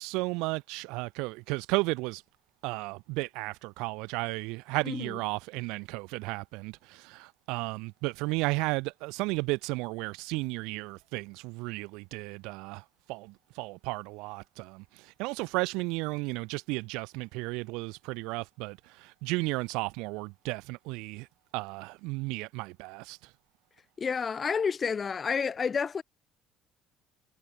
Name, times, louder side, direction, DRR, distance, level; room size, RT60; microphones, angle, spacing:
voice 1, 0.0-2.2 2.6-21.3 21.5-23.2, right 25 dB, 85° right, 0.5 m, -34 dB
voice 2, 4.8-5.2 24.0-26.0, left 6 dB, 30° left, 2.1 m, -30 dB
cardioid pair, 120°, 0 cm